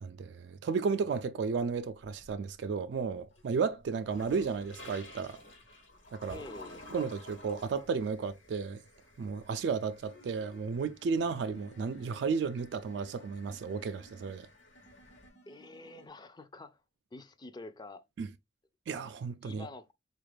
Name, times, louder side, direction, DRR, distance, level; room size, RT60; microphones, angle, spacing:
voice 1, 0.0-5.4 6.1-6.4 6.9-8.8 9.2-14.5 18.2-18.3 18.9-19.7, right 5 dB, 65° right, 0.3 m, -33 dB
sound 1, 1.6-2.5 3.0-15.3, left 1 dB, 80° left, 1.2 m, -53 dB
voice 2, 6.3-6.9 15.5-16.8 17.1-18.1 19.4-19.9, left 2 dB, 20° left, 0.3 m, -47 dB
sound 2, 10.0-10.7 11.1-12.6 12.9-14.4 14.8-16.1, equal, 60° left, 1.1 m, -58 dB
4.0 x 2.4 x 3.2 m
head